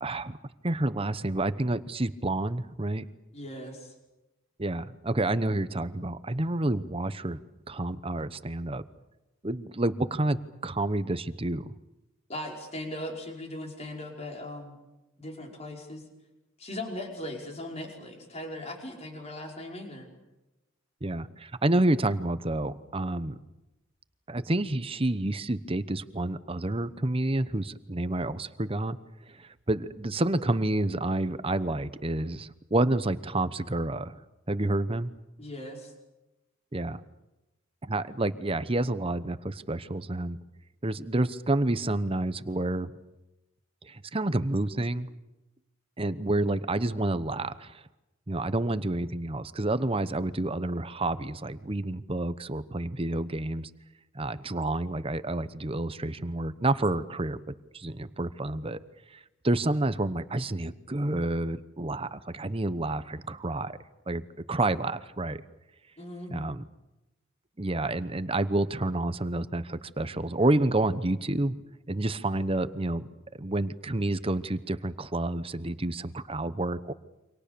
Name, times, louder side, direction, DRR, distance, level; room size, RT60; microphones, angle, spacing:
voice 1, 0.0-0.4 0.6-3.0 4.6-7.4 7.7-8.8 9.4-11.7 21.0-23.4 24.3-29.0 29.3-34.2 34.5-35.1 36.7-37.0 37.8-40.4 40.8-42.9 43.8-45.1 46.0-47.8 48.3-53.7 54.1-58.8 59.1-63.8 64.1-64.2 64.5-65.4 66.3-66.6 67.6-71.6 71.9-76.9, right 2 dB, 30° right, 13 dB, 1.0 m, -29 dB
voice 2, 3.3-3.9 12.3-14.8 15.2-16.0 16.6-20.1 35.4-35.9 66.0-66.3, left 1 dB, 30° left, 1 dB, 5.4 m, -39 dB
29.0 x 26.0 x 6.9 m, 0.99 s
head